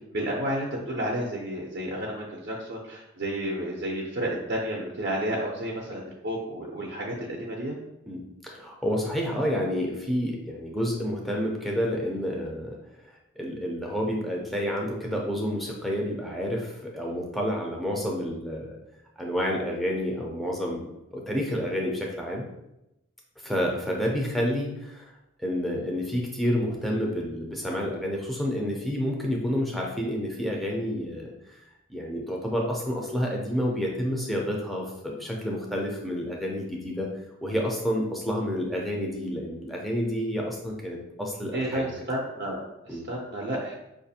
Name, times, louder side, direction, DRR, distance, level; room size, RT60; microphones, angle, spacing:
voice 1, 0.1-7.8 41.5-43.8, right 1 dB, 55° right, -3 dB, 0.5 m, -31 dB
voice 2, 8.1-12.8 13.0-18.8 19.2-22.4 23.4-25.1 25.4-31.6 31.9-37.1 37.4-41.9 42.9-43.0, equal, ahead, -2 dB, 0.4 m, -29 dB
4.7 x 2.5 x 2.7 m, 0.89 s
head